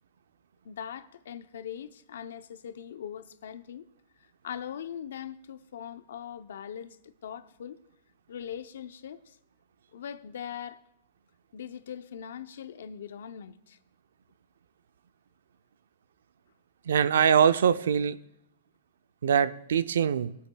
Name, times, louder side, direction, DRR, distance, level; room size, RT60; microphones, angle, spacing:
voice 1, 0.6-3.8 4.4-7.8 8.3-9.4 9.9-10.8 11.5-13.8, left 9 dB, 80° left, 0.6 m, -41 dB
voice 2, 16.9-18.2 19.2-20.4, right 7 dB, 90° right, 0.5 m, -23 dB
20.5 x 8.5 x 2.3 m
supercardioid pair, 165°, 0 cm